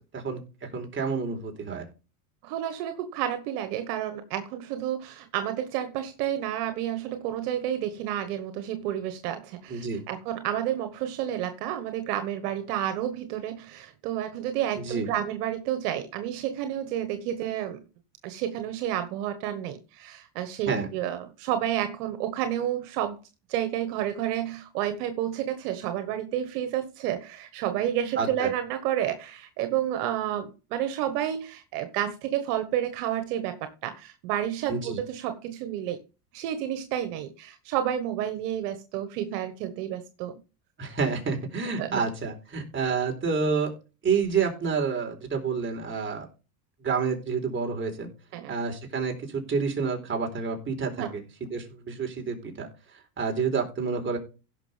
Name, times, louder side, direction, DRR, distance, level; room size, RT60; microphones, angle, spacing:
voice 1, 0.1-1.9 9.7-10.0 14.8-15.1 20.7-20.9 28.2-28.5 34.7-35.0 40.8-43.7 44.0-46.3 46.8-48.1 48.5-51.2 51.5-52.7 53.2-54.2, right 5 dB, 25° right, 4.2 m, -29 dB
voice 2, 2.4-17.8 18.2-23.2 23.5-36.0 36.3-40.4 41.8-42.0 48.3-48.5 51.0-51.1, right 11 dB, 70° right, 1.6 m, -30 dB
16.5 x 6.3 x 3.4 m
supercardioid pair, 115°, 48 cm